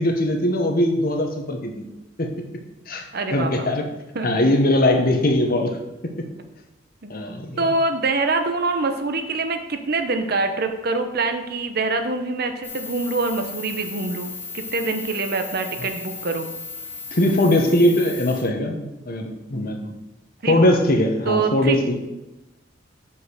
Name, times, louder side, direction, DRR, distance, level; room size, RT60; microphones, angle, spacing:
voice 1, 0.0-1.8 2.2-2.3 2.9-3.8 4.2-5.8 6.0-6.3 7.1-7.6 15.8-15.9 17.1-19.9 20.5-22.0, left 1 dB, 50° left, 4 dB, 1.2 m, -21 dB
voice 2, 3.1-3.7 4.1-4.3 7.0-7.2 7.6-16.5 20.4-20.6 21.3-21.8, right 3 dB, 55° right, 6 dB, 0.8 m, -25 dB
sound 1, 12.6-18.4, left 4 dB, 10° left, 1.6 m, -35 dB
6.5 x 5.6 x 6.5 m, 1.0 s
head